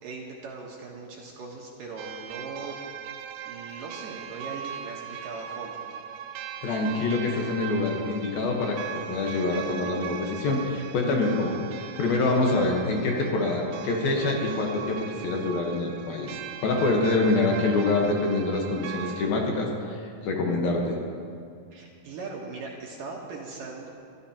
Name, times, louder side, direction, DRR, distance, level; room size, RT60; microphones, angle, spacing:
voice 1, 0.0-2.8 3.4-5.9 21.7-23.9, right 4 dB, 65° right, -2 dB, 2.4 m, -39 dB
sound 1, 2.0-19.3, right 9 dB, 90° right, 2.8 m, -40 dB
voice 2, 6.6-8.8 9.1-21.0, left 2 dB, 65° left, 0 dB, 2.8 m, -26 dB
23.5 x 13.5 x 2.9 m, 2.3 s
omnidirectional pair, 4.9 m